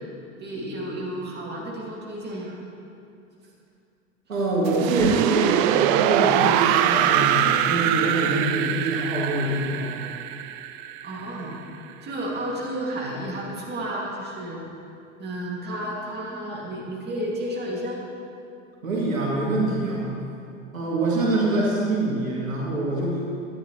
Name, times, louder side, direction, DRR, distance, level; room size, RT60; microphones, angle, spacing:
voice 1, 0.4-2.6 11.0-11.6 12.0-14.6 15.2-18.0, right 1 dB, 25° right, -4 dB, 2.6 m, -32 dB
voice 2, 4.3-10.0 18.8-20.1 20.7-23.3, right 2 dB, 85° right, -4 dB, 2.2 m, -25 dB
sound 1, 4.7-11.6, right 11 dB, 45° right, 0.5 m, -23 dB
12.5 x 10.5 x 3.3 m, 2.5 s
hypercardioid pair, 90°, 39 cm